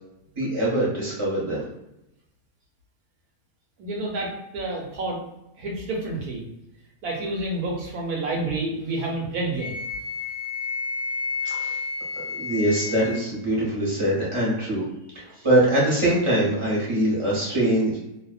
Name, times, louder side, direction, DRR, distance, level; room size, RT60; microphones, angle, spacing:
voice 1, 0.4-1.7 11.4-11.8 12.3-14.8 15.1-17.9, right 1 dB, 25° right, -6 dB, 0.7 m, -23 dB
voice 2, 3.8-5.2 5.6-6.5 7.0-9.8, right 2 dB, 80° right, -1 dB, 1.2 m, -29 dB
Wind instrument woodwind instrument, 9.6-13.2, left 4 dB, 55° left, 1.0 m, -31 dB
2.7 x 2.0 x 2.3 m, 0.87 s
omnidirectional pair, 1.6 m